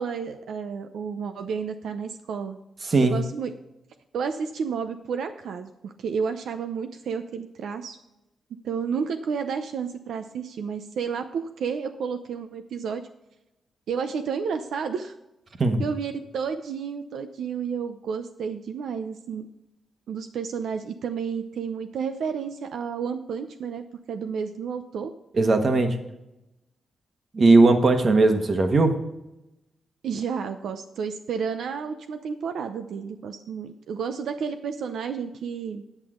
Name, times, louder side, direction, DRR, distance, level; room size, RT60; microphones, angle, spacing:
voice 1, 0.0-2.6 3.1-3.5 4.1-8.0 8.6-13.0 13.9-15.1 15.8-19.5 20.1-25.1 30.0-35.8, right 6 dB, 85° right, 7 dB, 0.6 m, -31 dB
voice 2, 25.4-26.0 27.3-29.0, right 3 dB, 40° right, 6 dB, 1.2 m, -18 dB
8.6 x 8.3 x 3.7 m, 0.92 s
cardioid pair, 115°, 0 cm